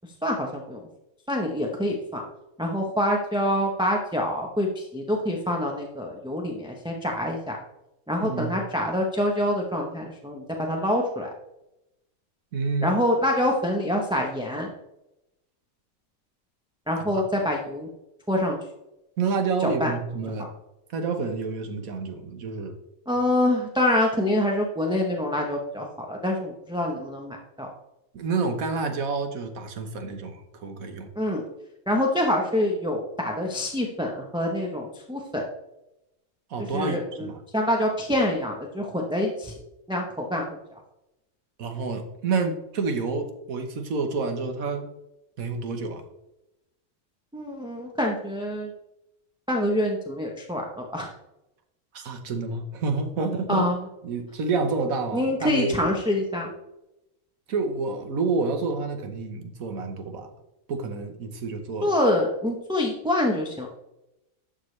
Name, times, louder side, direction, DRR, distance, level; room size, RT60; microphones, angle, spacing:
voice 1, 0.2-0.8 1.3-2.2 2.6-7.6 8.1-11.3 12.8-14.7 16.9-17.9 18.3-18.6 19.6-19.9 23.1-27.7 31.2-31.4 31.9-35.4 36.7-37.3 37.5-39.5 39.9-40.6 47.3-48.7 49.5-51.1 53.5-53.8 55.1-56.5 61.8-63.7, left 1 dB, 5° right, 0 dB, 0.8 m, -26 dB
voice 2, 8.2-8.5 12.5-12.9 17.1-17.2 19.2-20.5 20.9-22.7 28.1-31.1 36.5-37.4 41.6-44.9 45.4-46.0 51.9-53.7 54.0-55.9 57.5-60.3 60.7-61.9, right 4 dB, 85° right, 6 dB, 1.5 m, -29 dB
11.5 x 6.4 x 3.3 m, 0.89 s
omnidirectional pair, 1.4 m